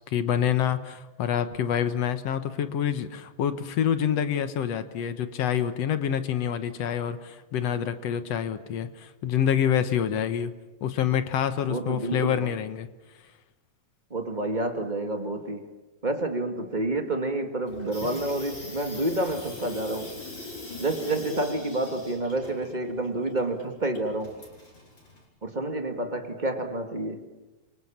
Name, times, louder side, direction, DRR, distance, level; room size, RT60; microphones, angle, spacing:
voice 1, 0.0-10.5 10.8-12.9, left 9 dB, 60° left, 11 dB, 1.8 m, -27 dB
voice 2, 11.7-12.5 14.1-15.7 16.0-20.1 20.8-24.4 25.4-27.2, right 2 dB, 25° right, 5 dB, 1.0 m, -29 dB
Water tap faucet / Sink (filling or washing), 17.7-25.2, left 2 dB, 30° left, 5.7 m, -42 dB
29.5 x 24.5 x 7.4 m, 1.1 s
omnidirectional pair, 4.1 m